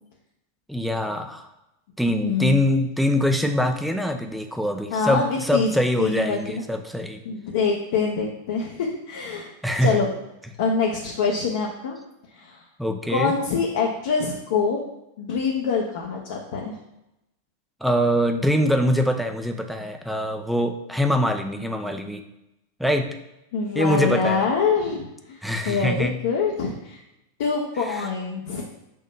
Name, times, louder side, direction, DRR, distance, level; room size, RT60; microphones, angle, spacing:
voice 1, 0.7-1.5 2.0-7.2 9.6-10.0 12.8-13.3 17.8-22.2 22.8-23.1 23.7-24.5 25.4-26.2 27.8-28.1, equal, ahead, 5 dB, 0.6 m, -23 dB
voice 2, 2.2-2.6 4.9-5.7 6.0-6.6 7.2-9.5 9.8-10.1 10.6-12.0 12.3-12.6 13.1-14.8 15.2-16.8 23.5-25.4 25.7-27.0 27.4-28.6, left 5 dB, 55° left, -1 dB, 0.9 m, -25 dB
6.5 x 3.0 x 5.6 m, 0.90 s
figure-of-eight pair, 90°, 0 cm